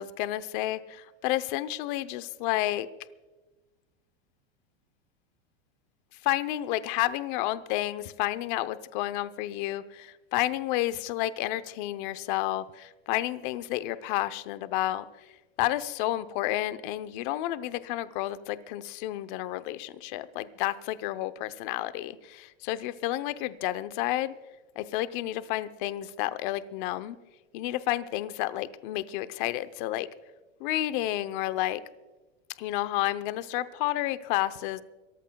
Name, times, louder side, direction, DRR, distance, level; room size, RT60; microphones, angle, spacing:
voice 1, 0.0-2.9 6.2-15.0 15.6-24.3 24.8-27.2 27.5-30.1 30.6-31.8 32.6-34.8, left 15 dB, 50° left, 13 dB, 0.8 m, -30 dB
29.0 x 14.5 x 2.3 m, 1.2 s
supercardioid pair, 145°, 31 cm